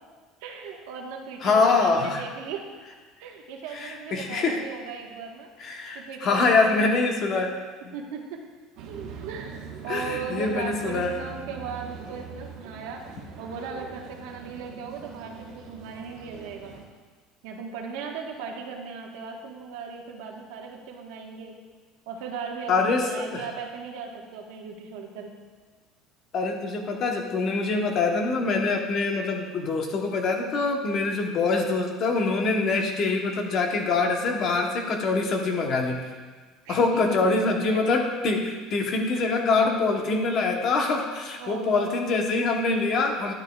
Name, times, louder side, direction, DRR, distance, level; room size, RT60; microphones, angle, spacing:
voice 1, 0.4-2.7 3.2-5.5 5.9-7.5 7.9-8.4 9.3-13.1 13.4-16.7 17.4-21.5 22.1-25.3 36.6-37.4 37.7-37.8 41.4-42.1, right 5 dB, 80° right, 1 dB, 1.3 m, -37 dB
voice 2, 1.4-2.2 3.7-4.6 5.6-7.5 7.8-7.9 9.9-11.1 22.7-23.4 26.3-36.0 36.7-43.3, left 3 dB, 35° left, 3 dB, 0.9 m, -24 dB
sound 1, 8.8-16.8, right 6 dB, 55° right, 1.2 m, -42 dB
11.0 x 9.0 x 2.3 m, 1.4 s
cardioid pair, 170°, 0 cm